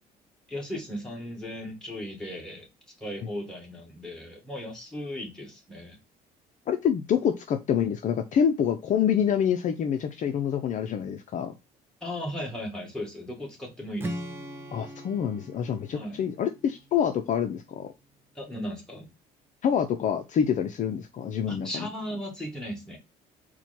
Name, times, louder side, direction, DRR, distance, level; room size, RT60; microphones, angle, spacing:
voice 1, 0.5-2.7 3.0-6.0 12.0-14.2 15.9-16.2 18.4-19.1 21.5-23.0, equal, 5° left, 0 dB, 1.9 m, -36 dB
voice 2, 6.7-11.5 14.7-17.9 19.6-21.9, left 8 dB, 50° left, 7 dB, 0.5 m, -26 dB
Strum, 14.0-18.1, right 1 dB, 15° right, 0.7 m, -41 dB
4.4 x 2.2 x 4.2 m, 0.24 s
cardioid pair, 110°, 17 cm